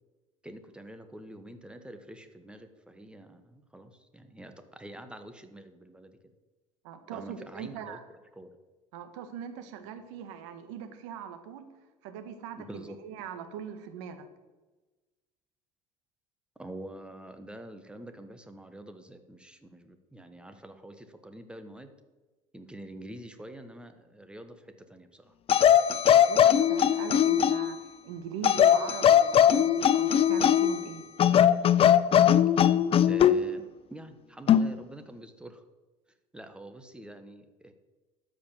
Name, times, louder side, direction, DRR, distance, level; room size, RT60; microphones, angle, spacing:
voice 1, 0.4-6.1 7.1-8.0 8.4-8.5 12.6-13.0 16.6-21.9 22.5-24.6 24.9-25.2 33.1-33.6 33.9-35.6 36.3-37.7, right 1 dB, 5° right, 8 dB, 1.3 m, -46 dB
voice 2, 6.8-8.0 8.9-11.7 12.0-14.3 26.3-31.0, right 8 dB, 80° right, 8 dB, 1.4 m, -41 dB
sound 1, 25.5-27.7 28.4-30.8 31.2-33.4 34.5-34.7, left 9 dB, 35° left, 0.5 m, -20 dB
13.0 x 5.3 x 7.4 m, 1.2 s
supercardioid pair, 90°, 16 cm